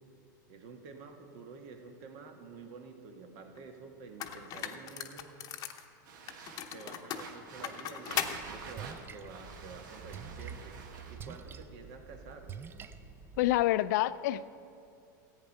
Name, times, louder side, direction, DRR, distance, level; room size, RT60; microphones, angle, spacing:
voice 1, 0.5-5.3 6.7-10.8 11.1-12.5, right 4 dB, 55° right, 5 dB, 1.5 m, -49 dB
sound 1, 3.6-3.7 4.2-5.8 6.3-8.4, left 10 dB, 35° left, 0.8 m, -38 dB
sound 2, 6.0-11.4, right 5 dB, 75° right, 1.4 m, -49 dB
Splash splatter, 8.3-13.6, right 6 dB, 20° right, 0.5 m, -47 dB
voice 2, 13.4-14.5, left 15 dB, 65° left, 16 dB, 0.4 m, -27 dB
14.0 x 8.9 x 5.5 m, 2.5 s
supercardioid pair, 130°, 10 cm